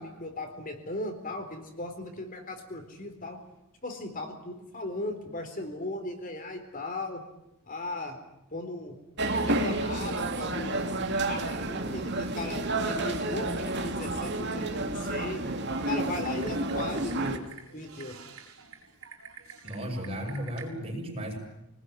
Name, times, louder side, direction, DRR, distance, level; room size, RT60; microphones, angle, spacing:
voice 1, 0.0-3.4 3.8-7.2 7.7-8.2 8.5-11.0 11.3-15.4 15.9-17.4 17.7-18.1, left 2 dB, 40° left, 5 dB, 4.0 m, -37 dB
sound 1, 9.2-17.4, right 2 dB, 50° right, 2.8 m, -30 dB
Typing, 15.9-20.7, right 6 dB, 80° right, 4.9 m, -48 dB
voice 2, 19.6-21.4, equal, 30° right, 3 dB, 6.5 m, -34 dB
26.5 x 20.0 x 10.0 m, 0.87 s
head